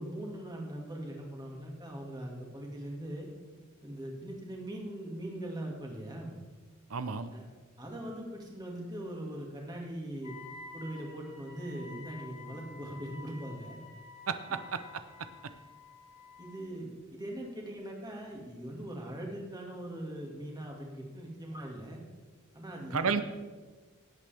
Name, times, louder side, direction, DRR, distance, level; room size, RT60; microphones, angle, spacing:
voice 1, 0.0-3.3 3.8-6.4 7.3-7.4 7.8-10.4 10.7-13.8 16.4-22.0 22.5-23.2, right 1 dB, 20° right, -1 dB, 2.2 m, -41 dB
voice 2, 6.9-7.3 14.3-14.8 22.9-23.2, right 5 dB, 80° right, 11 dB, 0.7 m, -31 dB
Wind instrument woodwind instrument, 10.2-16.7, left 3 dB, 80° left, 2.7 m, -50 dB
17.0 x 8.5 x 3.5 m, 1.4 s
head